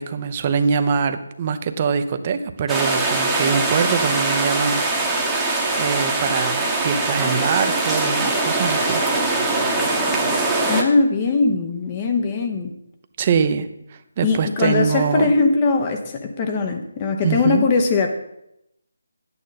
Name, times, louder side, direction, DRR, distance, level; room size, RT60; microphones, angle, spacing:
voice 1, 0.0-4.8 5.8-9.0 13.2-13.7 14.2-15.3 17.2-17.6, right 6 dB, 30° right, 9 dB, 0.7 m, -23 dB
sound 1, 2.7-10.8, right 2 dB, 5° right, 1.1 m, -22 dB
voice 2, 10.7-12.7 14.2-18.1, left 4 dB, 25° left, 4 dB, 0.9 m, -20 dB
10.0 x 8.7 x 4.1 m, 0.80 s
figure-of-eight pair, 160°, 0 cm